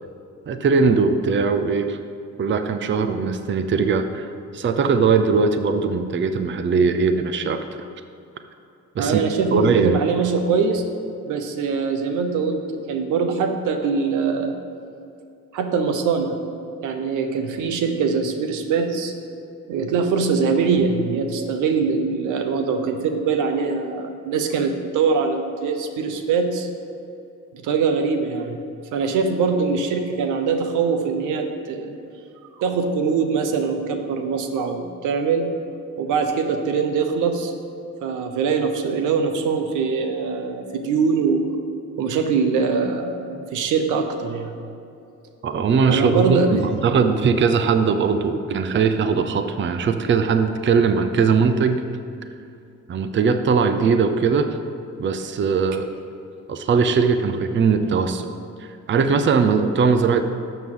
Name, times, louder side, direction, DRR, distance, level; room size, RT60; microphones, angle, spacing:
voice 1, 0.5-2.0 2.4-4.3 4.5-7.8 9.0-9.2 9.5-10.0 45.4-51.8 52.9-54.5 55.0-55.9 56.5-58.3 58.6-60.2, right 5 dB, 40° right, 8 dB, 0.6 m, -20 dB
voice 2, 9.0-10.8 11.2-12.6 12.9-14.5 15.5-16.3 16.8-19.1 19.7-26.7 27.5-28.6 28.9-32.0 32.6-35.5 36.0-37.5 38.0-41.6 42.0-44.6 45.9-46.6, right 5 dB, 90° right, 5 dB, 0.9 m, -22 dB
12.0 x 7.0 x 3.8 m, 2.6 s
cardioid pair, 90°, 30 cm